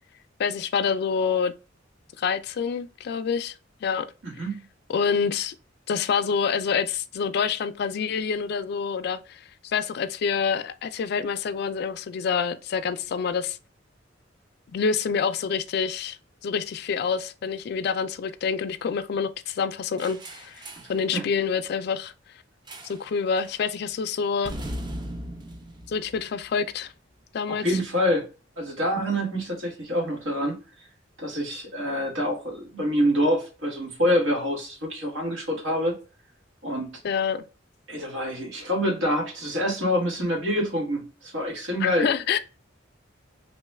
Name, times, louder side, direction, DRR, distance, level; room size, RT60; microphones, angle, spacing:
voice 1, 0.4-1.5 2.2-3.5 3.8-4.1 4.9-5.5 5.9-13.6 14.7-16.2 16.4-20.6 20.9-22.1 22.8-24.5 25.9-26.9 27.3-27.8 37.0-37.4 41.8-42.4, left 6 dB, 55° left, 0.3 m, -27 dB
voice 2, 4.2-4.6 21.1-21.3 27.5-28.3 28.6-30.9 31.2-35.9 36.6-36.9 37.9-42.1, equal, 80° right, 1.4 m, -26 dB
sound 1, 20.0-21.0 22.7-23.1 23.3-23.6 24.4-26.8, equal, 25° right, 0.4 m, -38 dB
3.0 x 2.3 x 3.1 m
head